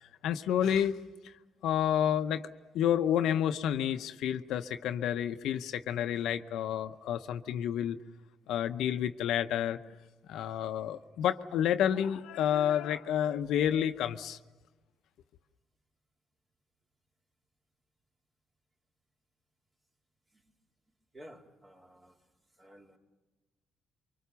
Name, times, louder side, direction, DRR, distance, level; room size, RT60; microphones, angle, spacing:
voice 1, 0.2-1.3 1.6-2.5 2.7-8.0 8.5-9.8 10.3-14.4, left 10 dB, 80° left, 9 dB, 0.8 m, -30 dB
voice 2, 21.1-22.2 22.6-23.0, equal, 30° right, 1 dB, 3.3 m, -53 dB
24.0 x 23.5 x 7.0 m, 1.2 s
cardioid pair, 80°, 0 cm